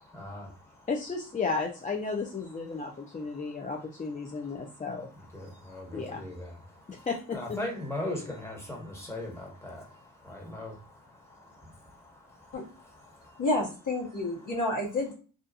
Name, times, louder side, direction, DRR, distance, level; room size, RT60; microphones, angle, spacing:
voice 1, 0.1-0.9 2.7-3.7 4.2-4.9 5.2-13.4, left 1 dB, 10° left, -1 dB, 1.2 m, -41 dB
voice 2, 0.9-5.1 5.9-6.2 6.9-7.4, left 4 dB, 25° left, 1 dB, 0.4 m, -33 dB
voice 3, 13.4-15.1, left 2 dB, 65° left, -1 dB, 1.1 m, -29 dB
2.6 x 2.4 x 2.3 m, 0.37 s
cardioid pair, 60°, 33 cm